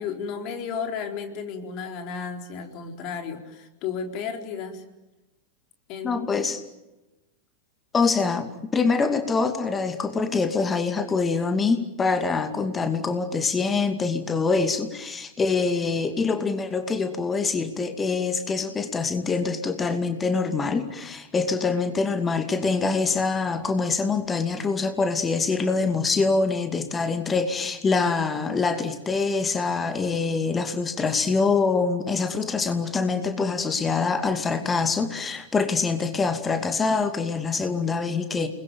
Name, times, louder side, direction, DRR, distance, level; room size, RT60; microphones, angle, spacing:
voice 1, 0.0-4.8 5.9-6.4, left 6 dB, 40° left, 4 dB, 4.1 m, -33 dB
voice 2, 6.0-6.6 7.9-38.5, left 4 dB, 15° left, 8 dB, 2.5 m, -25 dB
29.5 x 21.5 x 9.3 m, 1.0 s
figure-of-eight pair, 90°, 0 cm